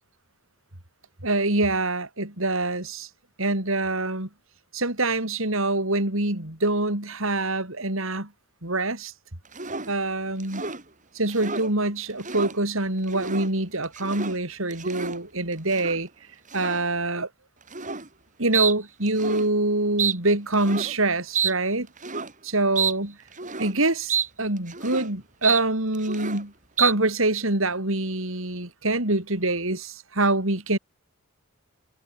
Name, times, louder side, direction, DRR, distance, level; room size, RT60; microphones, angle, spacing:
voice 1, 1.2-3.1 3.4-4.3 4.7-8.3 8.6-9.1 9.9-10.6 11.1-16.1 16.5-17.3 18.4-21.9 22.4-23.2 23.6-26.5 26.8-30.8, right 2 dB, 65° right, 4.5 m, -25 dB
sound 1, 9.5-9.9 10.4-10.8 11.3-11.7 12.1-12.5 13.0-13.5 13.8-14.4 14.7-15.2 15.7-16.0 16.5-16.8 17.7-18.1 18.5-18.7 19.1-19.5 20.0-20.2 20.5-20.9 21.3-21.5 22.0-22.3 22.8-22.9 23.3-23.7 24.1-24.3 24.6-25.1 25.4-25.6 25.9-26.4 26.8-26.9, right 7 dB, 35° right, 7.9 m, -29 dB
head